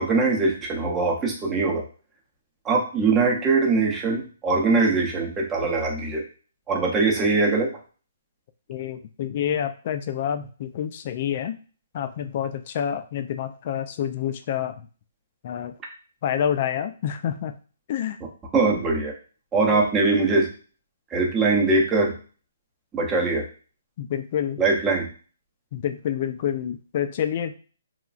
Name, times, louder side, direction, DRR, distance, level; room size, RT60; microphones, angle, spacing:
voice 1, 0.0-1.8 2.6-6.2 6.7-7.7 18.5-19.1 19.5-20.5 21.1-22.1 22.9-23.4 24.6-25.1, right 3 dB, 15° right, -1 dB, 0.6 m, -22 dB
voice 2, 8.7-11.6 11.9-14.8 15.4-15.7 16.2-17.5 17.9-18.2 19.7-19.8 24.0-24.6 25.7-27.5, left 9 dB, 40° left, 9 dB, 0.3 m, -28 dB
3.0 x 2.3 x 2.4 m, 0.38 s
hypercardioid pair, 155°, 0 cm